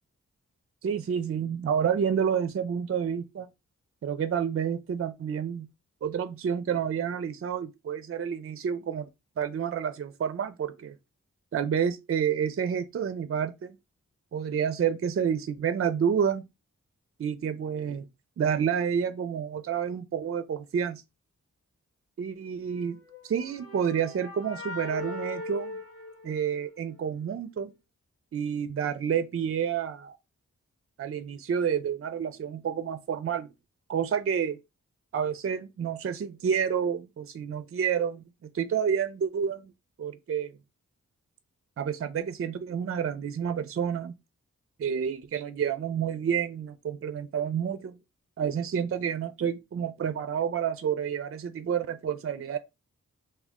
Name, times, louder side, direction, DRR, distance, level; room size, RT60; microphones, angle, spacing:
voice 1, 0.8-3.5 4.0-5.7 6.0-9.1 9.4-10.9 11.5-13.8 14.3-16.4 17.2-18.1 18.4-21.0 22.2-23.0 23.2-25.8 26.2-27.7 28.3-30.2 31.0-33.5 33.9-34.6 35.1-38.2 38.5-39.7 40.0-40.5 41.8-44.1 44.8-47.9 48.4-52.6, right 7 dB, 50° right, 0.4 m, -29 dB
sound 1, 23.0-26.9, left 2 dB, 50° left, 0.7 m, -39 dB
3.6 x 2.2 x 3.5 m
wide cardioid pair, 70°, 30 cm